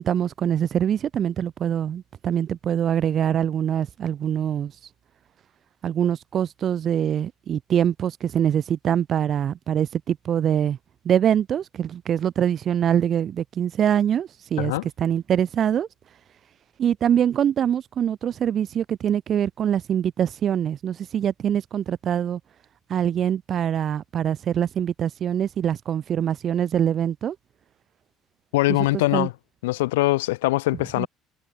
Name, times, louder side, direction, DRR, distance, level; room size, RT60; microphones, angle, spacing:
voice 1, 0.0-4.7 5.8-10.8 11.0-15.9 16.8-22.4 22.9-27.3 28.7-28.8 29.1-29.3 31.0-31.1, right 9 dB, 50° right, 3.3 m, -24 dB
voice 2, 28.5-29.3 29.6-31.1, left 19 dB, 80° left, 1.6 m, -22 dB
hypercardioid pair, 60°, 0 cm